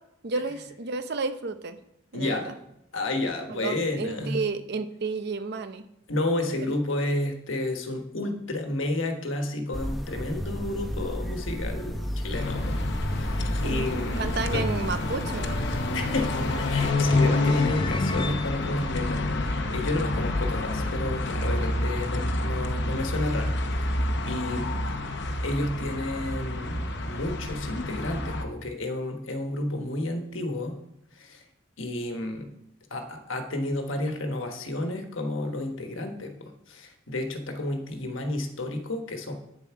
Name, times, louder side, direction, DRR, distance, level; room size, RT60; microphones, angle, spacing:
voice 1, 0.2-1.8 2.1-2.5 3.5-5.9 13.6-13.9 14.2-15.6, right 4 dB, 55° right, 10 dB, 0.7 m, -31 dB
voice 2, 2.1-2.5 2.9-4.4 6.1-12.8 13.1-14.6 15.9-19.2 19.7-23.5 23.8-24.7 25.4-30.7 31.1-31.4 31.8-32.5 32.9-39.3, left 2 dB, 80° left, 5 dB, 1.3 m, -31 dB
sound 1, 9.7-16.9, equal, ahead, 0.7 m, -33 dB
sound 2, 11.0-20.0, left 3 dB, 25° left, 0.3 m, -38 dB
sound 3, 12.3-28.4, left 2 dB, 60° left, 0.8 m, -28 dB
9.1 x 7.1 x 4.7 m, 0.80 s
head